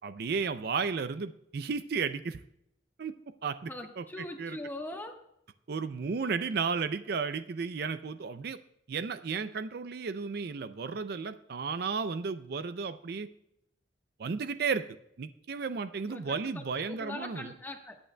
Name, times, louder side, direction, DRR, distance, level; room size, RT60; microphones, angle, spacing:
voice 1, 0.0-2.4 3.0-3.1 3.4-4.6 5.7-8.6 8.9-13.3 14.2-14.8 15.2-17.5, right 5 dB, 55° right, 11 dB, 0.4 m, -33 dB
voice 2, 3.7-5.2 16.1-16.2 16.5-18.0, left 1 dB, 10° left, 3 dB, 1.2 m, -41 dB
21.5 x 8.8 x 2.2 m, 0.77 s
head